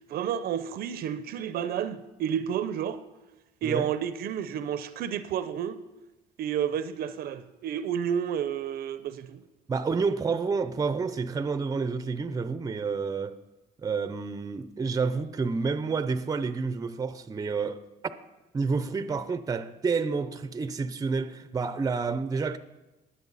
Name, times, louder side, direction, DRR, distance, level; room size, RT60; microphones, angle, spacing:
voice 1, 0.1-3.0 3.6-5.8 6.4-9.4, right 8 dB, 65° right, 0.7 m, -30 dB
voice 2, 9.7-13.4 13.8-17.8 18.5-22.6, right 4 dB, 20° right, 0.6 m, -29 dB
19.5 x 7.8 x 4.1 m
cardioid pair, 110°, 17 cm